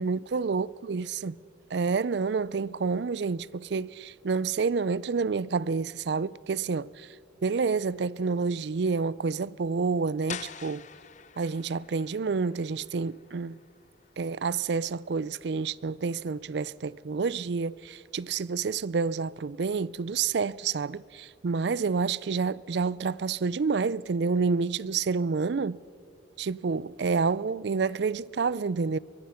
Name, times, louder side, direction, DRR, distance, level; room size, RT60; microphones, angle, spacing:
voice 1, 0.0-1.4 1.7-7.1 7.4-10.8 11.4-13.6 14.2-25.8 26.4-29.0, right 5 dB, 60° right, 0.4 m, -29 dB
sound 1, 10.3-15.9, left 7 dB, 40° left, 0.6 m, -46 dB
23.0 x 22.5 x 5.8 m
head